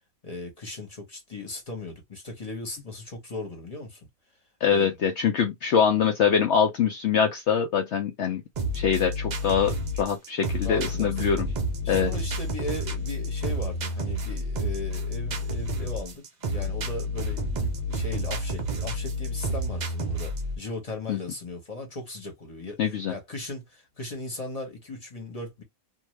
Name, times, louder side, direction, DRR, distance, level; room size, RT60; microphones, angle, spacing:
voice 1, 0.2-4.1 4.7-4.9 10.6-11.1 11.8-25.6, left 2 dB, 30° left, 0.9 m, -38 dB
voice 2, 4.6-8.4 8.7-11.5 11.9-12.1 21.1-21.2 22.8-23.1, left 7 dB, 65° left, 0.7 m, -24 dB
sound 1, 8.6-20.6, equal, 80° right, 0.4 m, -30 dB
2.7 x 2.2 x 3.1 m
omnidirectional pair, 1.6 m